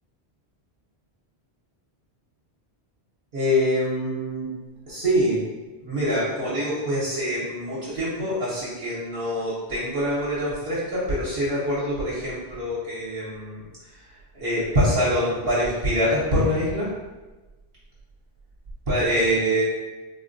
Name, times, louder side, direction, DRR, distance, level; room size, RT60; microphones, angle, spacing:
voice 1, 3.3-4.5 4.9-5.4 5.8-13.6 14.3-16.9 18.9-19.6, equal, 60° right, -8 dB, 1.0 m, -24 dB
3.8 x 2.1 x 2.5 m, 1.2 s
omnidirectional pair, 1.1 m